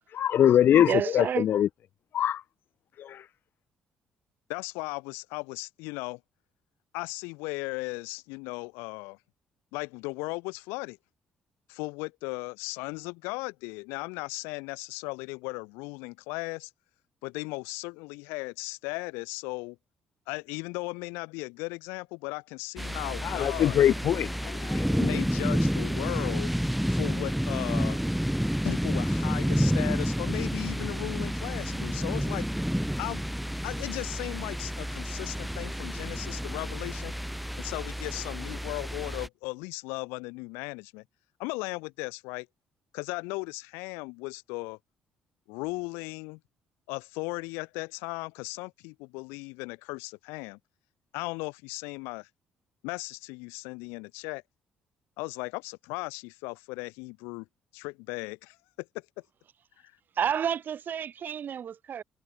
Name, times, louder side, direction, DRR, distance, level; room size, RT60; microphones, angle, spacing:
voice 1, 0.1-0.9 1.1-1.7 2.1-2.4 23.3-25.0, left 10 dB, 60° left, 1.3 m, -22 dB
voice 2, 0.7-1.5 60.2-62.0, right 8 dB, 55° right, 4.5 m, -30 dB
voice 3, 4.5-6.2 6.9-9.2 9.7-11.0 11.7-16.7 17.2-19.8 20.3-23.8 25.0-26.5 26.9-28.0 28.6-32.5 33.0-33.2 33.6-37.1 37.6-41.0 41.4-42.5 42.9-44.8 45.5-46.4 46.9-50.6 51.1-52.3 52.8-54.4 55.2-57.5 57.7-59.0, left 28 dB, 80° left, 3.7 m, -36 dB
sound 1, 22.8-39.3, equal, ahead, 6.2 m, -30 dB
hypercardioid pair, 55°, 4 cm